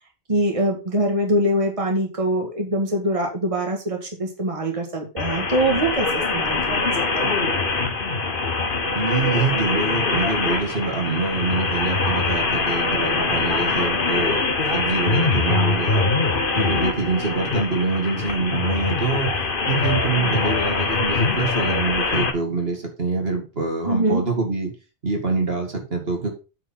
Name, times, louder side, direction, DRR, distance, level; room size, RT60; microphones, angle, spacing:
voice 1, 0.3-7.4 23.9-24.2, right 1 dB, 30° right, 1 dB, 1.9 m, -23 dB
sound 1, 5.2-22.3, left 3 dB, 55° left, 1.4 m, -23 dB
voice 2, 8.9-14.4 14.7-16.1 16.5-19.3 19.7-24.7 25.0-26.3, right 3 dB, 60° right, 2 dB, 2.6 m, -25 dB
9.2 x 4.7 x 5.6 m, 0.31 s
omnidirectional pair, 1.1 m